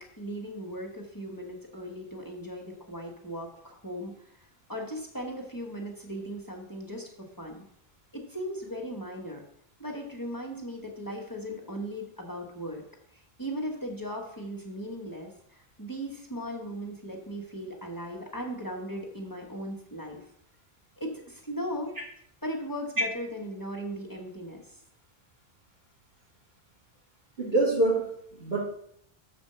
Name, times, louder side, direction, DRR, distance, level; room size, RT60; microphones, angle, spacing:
voice 1, 0.0-4.1 4.7-7.6 8.1-9.4 9.8-12.8 13.1-20.2 21.0-21.9 22.4-24.7, equal, 20° left, 0 dB, 1.2 m, -37 dB
voice 2, 27.4-28.6, right 2 dB, 70° right, -5 dB, 2.7 m, -26 dB
7.0 x 4.4 x 6.7 m, 0.70 s
omnidirectional pair, 1.1 m